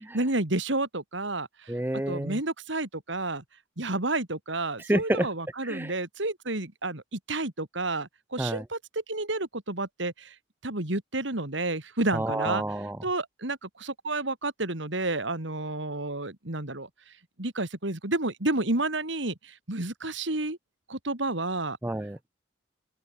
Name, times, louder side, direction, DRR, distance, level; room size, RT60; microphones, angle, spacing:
voice 1, 0.1-1.5 2.1-3.4 3.8-8.8 9.1-10.3 10.6-12.6 13.0-16.9 17.4-19.3 19.7-20.6 20.9-21.8, right 2 dB, 70° right, 3.0 m, -30 dB
voice 2, 1.7-2.4 4.9-5.3 5.6-5.9 8.4-8.6 12.1-13.0 21.8-22.2, right 1 dB, 10° right, 0.5 m, -28 dB
open air
head